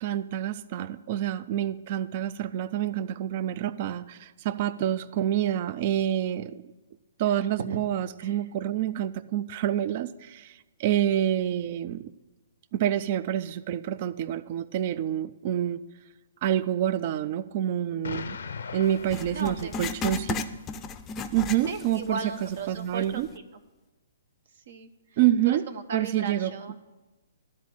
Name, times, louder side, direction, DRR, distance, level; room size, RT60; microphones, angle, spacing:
voice 1, 0.0-6.6 7.2-10.5 10.8-12.0 12.7-15.8 16.4-18.4 18.7-20.4 21.3-22.2 22.7-23.3 25.2-25.6 25.9-26.7, right 11 dB, 45° right, 16 dB, 0.4 m, -27 dB
Explosion, 18.0-20.2, left 5 dB, 75° left, 0.5 m, -39 dB
Writing, 19.1-22.1 22.4-22.5 23.2-23.3, left 4 dB, 20° left, 0.5 m, -34 dB
voice 2, 19.3-19.7 21.7-23.3 23.5-23.6 24.7-25.2 25.5-26.7, right 5 dB, 60° right, 9 dB, 0.8 m, -36 dB
12.0 x 4.2 x 8.2 m, 1.1 s
hypercardioid pair, 135°, 0 cm